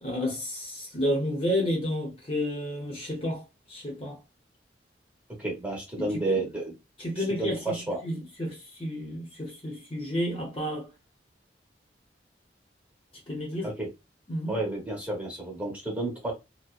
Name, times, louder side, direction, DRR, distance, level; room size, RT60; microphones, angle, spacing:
voice 1, 0.0-3.4 3.7-4.2 6.0-6.4 7.0-7.7 8.0-10.9 13.3-13.7 14.3-14.6, left 1 dB, 30° left, 0.8 m, -31 dB
voice 2, 5.4-6.7 7.2-8.0 13.6-13.9 14.5-16.3, right 2 dB, 10° right, 1.0 m, -31 dB
2.6 x 2.1 x 2.4 m
head